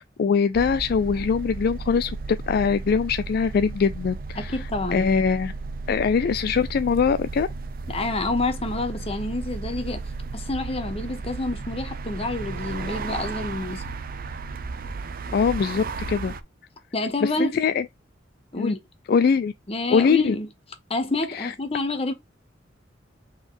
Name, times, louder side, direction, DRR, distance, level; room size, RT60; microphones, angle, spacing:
voice 1, 0.0-4.6 4.9-5.5 5.9-7.5 15.3-16.3 17.2-17.8 18.6-18.7 19.1-19.5 19.9-20.3 21.3-21.5, left 6 dB, 55° left, 0.3 m, -22 dB
sound 1, 0.5-16.4, right 3 dB, 50° right, 0.6 m, -34 dB
voice 2, 4.4-5.1 7.9-10.0 10.3-13.8 16.9-17.6 18.5-18.8 19.7-20.5 20.9-22.1, left 2 dB, 30° left, 1.0 m, -28 dB
4.0 x 3.9 x 3.2 m
head